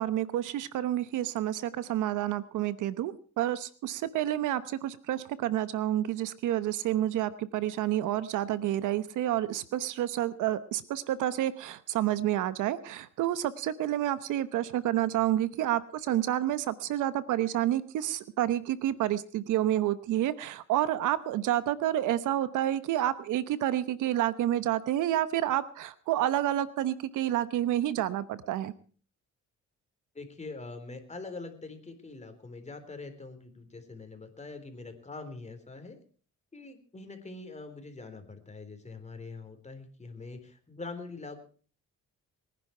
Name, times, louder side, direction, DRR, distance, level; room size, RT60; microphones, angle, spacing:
voice 1, 0.0-28.7, right 13 dB, 85° right, 15 dB, 1.0 m, -29 dB
voice 2, 30.1-36.0 36.5-41.4, left 3 dB, 20° left, 7 dB, 3.7 m, -44 dB
22.5 x 10.5 x 4.5 m, 0.42 s
cardioid pair, 90°, 30 cm